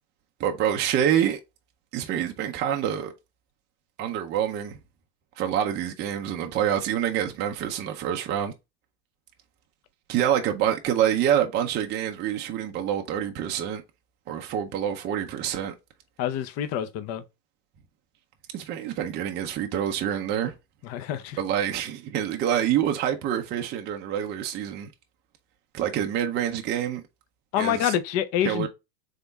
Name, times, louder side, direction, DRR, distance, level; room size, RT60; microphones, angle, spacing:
voice 1, 0.4-1.4 1.9-3.1 4.0-4.8 5.4-8.5 10.1-13.8 14.3-15.7 18.5-20.5 21.4-24.9 25.7-27.0 27.6-27.9 28.4-28.7, right 10 dB, 20° right, 0.5 m, -26 dB
voice 2, 16.2-17.2 20.8-21.4 27.5-28.7, left 10 dB, 30° left, 0.6 m, -27 dB
3.6 x 3.4 x 3.9 m
hypercardioid pair, 120°, 49 cm